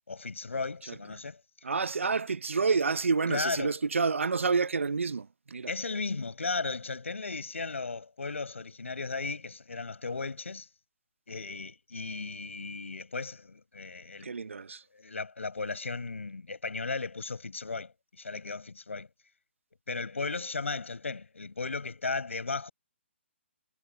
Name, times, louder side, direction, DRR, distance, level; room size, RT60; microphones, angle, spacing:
voice 1, 0.1-1.4 3.3-3.7 5.7-10.7 11.3-14.3 14.9-19.1 19.9-22.7, left 4 dB, 85° left, 5.2 m, -35 dB
voice 2, 1.6-5.7 14.2-14.8, right 4 dB, 80° right, 1.0 m, -29 dB
hypercardioid pair, 145°, 7 cm